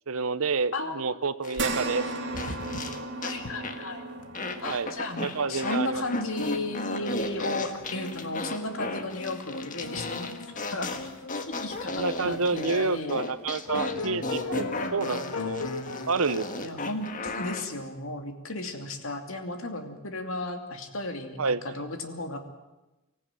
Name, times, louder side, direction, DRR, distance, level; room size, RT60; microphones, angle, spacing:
voice 1, 0.1-2.1 4.7-4.9 5.2-6.0 11.9-15.7 16.1-16.7 21.4-21.8, right 4 dB, 75° right, 14 dB, 0.8 m, -29 dB
voice 2, 0.7-1.0 3.2-4.0 4.6-10.4 10.7-10.9 11.5-13.2 16.6-22.4, left 2 dB, 65° left, 5 dB, 2.7 m, -34 dB
sound 1, 1.4-3.4 3.6-3.9 4.3-5.8 6.1-17.6, left 3 dB, 35° left, 1.6 m, -35 dB
sound 2, 1.6-10.2 10.6-10.7 12.2-12.3, right 2 dB, 55° right, 2.6 m, -38 dB
sound 3, 2.3-3.1 3.4-3.5 3.9-4.0 4.2-4.6 5.5-5.7 5.9-12.4 13.0-13.1 13.7-16.6, left 3 dB, 80° left, 1.9 m, -38 dB
24.5 x 15.0 x 9.2 m, 1.0 s
head